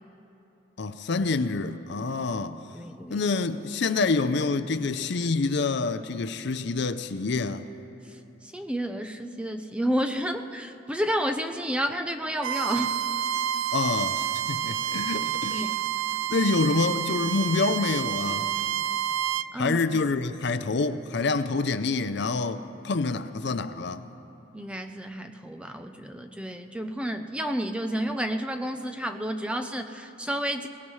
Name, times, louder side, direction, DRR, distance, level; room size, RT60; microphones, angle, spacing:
voice 1, 0.8-2.6 3.1-7.7 13.7-15.7 16.3-18.5 19.6-24.0, left 3 dB, 55° left, 0.5 m, -27 dB
voice 2, 2.7-3.2 8.1-13.0 15.5-15.7 19.5-20.0 24.5-30.7, equal, 5° right, 0.5 m, -31 dB
Bowed string instrument, 12.4-19.5, right 10 dB, 85° right, 0.3 m, -29 dB
22.5 x 19.0 x 3.2 m
head